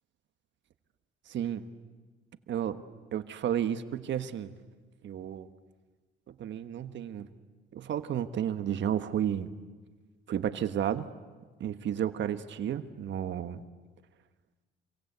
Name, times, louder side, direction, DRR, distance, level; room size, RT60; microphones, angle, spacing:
voice 1, 1.3-1.7 2.5-2.8 3.1-4.5 5.0-5.5 6.3-7.3 7.7-9.5 10.3-11.1 11.6-13.6, right 10 dB, 70° right, 10 dB, 1.4 m, -32 dB
27.5 x 23.5 x 8.1 m, 1.4 s
cardioid pair, 90°, 20 cm